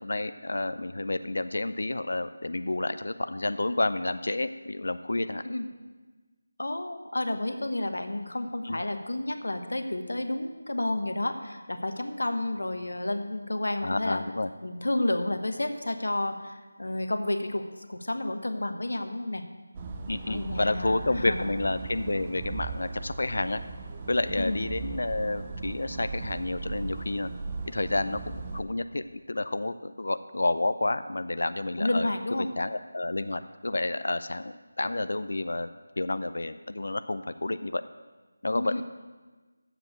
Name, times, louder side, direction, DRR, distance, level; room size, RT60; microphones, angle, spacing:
voice 1, 0.0-5.4 8.6-8.8 13.8-14.5 20.1-23.6 24.1-27.3 27.7-32.1 32.6-35.7 36.0-37.8 38.4-38.8, left 2 dB, 65° left, 11 dB, 0.5 m, -30 dB
voice 2, 6.6-14.2 14.6-17.6 17.9-19.4 20.2-21.5 24.4-24.6 31.8-32.5 38.5-38.8, left 1 dB, 85° left, 6 dB, 1.1 m, -31 dB
sound 1, 19.7-28.6, right 3 dB, 20° right, 0.5 m, -38 dB
7.7 x 7.0 x 8.0 m, 1.3 s
figure-of-eight pair, 170°, 0 cm